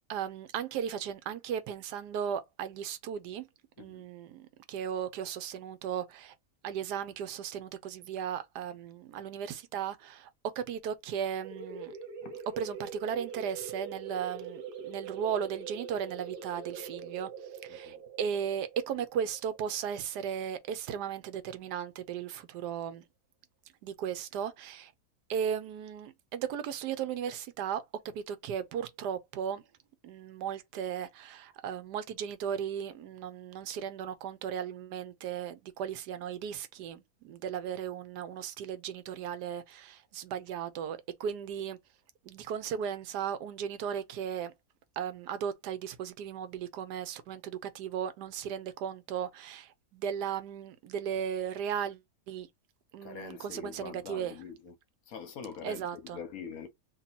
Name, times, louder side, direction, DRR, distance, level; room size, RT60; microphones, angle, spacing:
voice 1, 0.1-3.5 3.8-6.4 6.6-12.0 12.6-23.0 23.8-24.9 25.3-27.8 28.1-29.6 30.0-41.8 42.2-44.5 45.0-52.5 52.9-54.4 55.6-56.2, right 8 dB, 80° right, 1.2 m, -36 dB
sound 1, 11.4-20.8, right 6 dB, 45° right, 0.8 m, -43 dB
voice 2, 53.0-54.7 55.1-56.7, left 6 dB, 65° left, 1.1 m, -44 dB
2.9 x 2.7 x 4.0 m
omnidirectional pair, 1.7 m